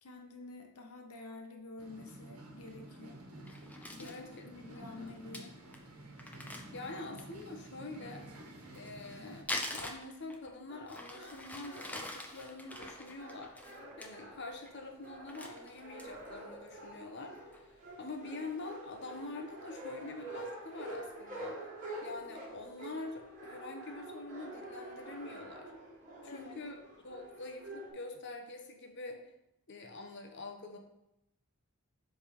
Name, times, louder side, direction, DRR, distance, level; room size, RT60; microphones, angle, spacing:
voice 1, 0.0-3.2 3.9-5.6 26.2-26.6, left 2 dB, 90° left, 3 dB, 1.0 m, -49 dB
sound 1, 1.8-9.4, right 1 dB, 85° right, 1.3 m, -51 dB
Crumpling crinkling, 3.5-4.2 4.7-4.8 5.1-5.2 5.3-5.4 5.7-5.8 6.2-7.4 8.6-10.5 10.9-14.1 14.5-14.7 15.0-16.3 16.7-16.8 17.2-17.6, left 1 dB, 5° left, 0.5 m, -43 dB
voice 2, 4.0-4.4 4.8-5.2 6.7-8.3 8.7-13.6 14.0-21.7 22.0-25.7 26.2-29.2 29.7-30.8, left 2 dB, 50° left, 3 dB, 0.9 m, -45 dB
sound 2, 10.7-27.9, right 1 dB, 35° right, 1.7 m, -48 dB
7.1 x 3.5 x 5.1 m, 0.88 s
head